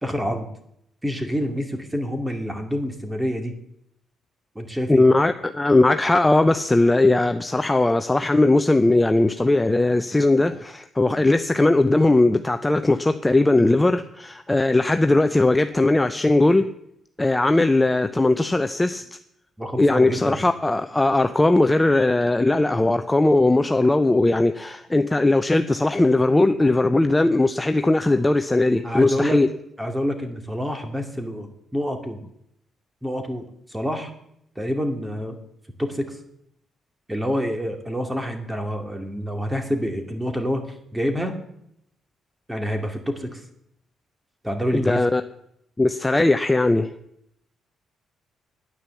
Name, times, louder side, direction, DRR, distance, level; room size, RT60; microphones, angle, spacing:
voice 1, 0.0-0.5 1.0-3.6 4.6-5.0 19.6-20.4 28.8-29.4 29.8-32.2 33.0-34.1 34.6-35.4 35.8-36.2 37.1-41.4 42.5-43.4 44.4-45.1, equal, 10° right, 2.2 m, -27 dB
voice 2, 4.9-16.7 17.2-19.0 19.8-29.5 44.7-45.2 45.8-46.9, left 2 dB, 15° left, 0.6 m, -19 dB
10.0 x 9.4 x 7.0 m
cardioid pair, 90°, 0 cm